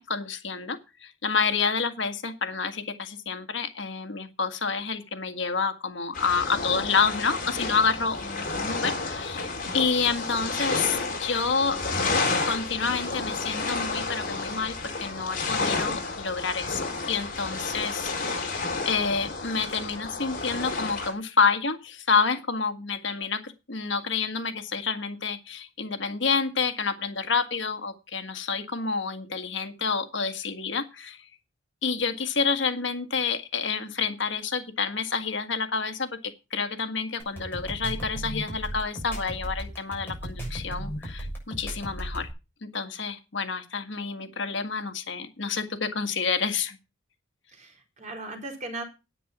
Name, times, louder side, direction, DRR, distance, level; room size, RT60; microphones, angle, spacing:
voice 1, 0.0-11.8 12.4-31.2 31.8-42.3 42.6-46.8, left 5 dB, 70° left, 9 dB, 1.7 m, -28 dB
sound 1, 6.1-21.1, left 3 dB, 45° left, 4.6 m, -31 dB
sound 2, 37.2-42.3, right 1 dB, 10° left, 7.1 m, -35 dB
voice 2, 47.5-48.8, right 2 dB, 40° right, 3 dB, 4.4 m, -38 dB
9.9 x 9.4 x 6.1 m, 0.28 s
head